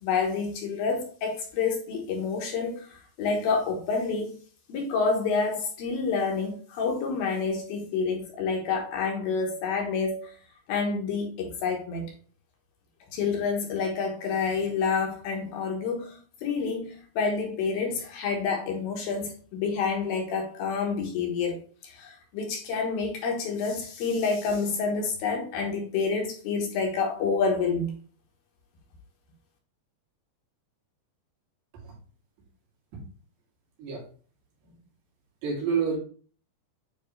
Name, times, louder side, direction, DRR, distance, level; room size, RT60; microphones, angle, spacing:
voice 1, 0.0-4.3 4.7-10.3 10.7-12.1 13.1-27.9, left 5 dB, 70° left, 2.7 m, -28 dB
voice 2, 35.4-36.0, right 6 dB, 70° right, 4.1 m, -28 dB
9.3 x 3.4 x 3.2 m
omnidirectional pair, 4.9 m